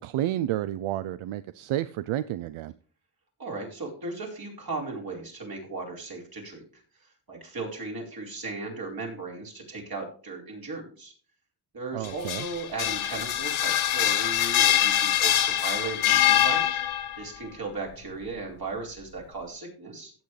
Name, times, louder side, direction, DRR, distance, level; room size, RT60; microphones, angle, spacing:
voice 1, 0.0-2.7 11.9-12.5, right 13 dB, 80° right, 0.6 m, -30 dB
voice 2, 3.4-6.8 7.3-11.1 11.7-16.6 17.2-20.1, right 3 dB, 45° right, 4.4 m, -36 dB
sound 1, 12.0-17.2, left 11 dB, 80° left, 1.1 m, -24 dB
15.5 x 8.1 x 3.2 m
cardioid pair, 105°, 48 cm